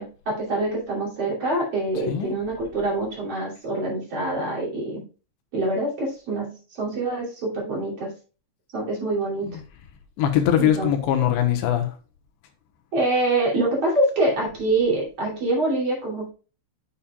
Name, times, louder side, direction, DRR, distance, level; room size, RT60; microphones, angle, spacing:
voice 1, 0.0-5.0 5.5-8.1 8.7-9.5 10.6-10.9 12.9-16.3, right 2 dB, 35° right, 3.3 m, -25 dB
voice 2, 10.2-11.9, left 10 dB, 80° left, 3.1 m, -21 dB
8.5 x 7.2 x 2.3 m
omnidirectional pair, 5.2 m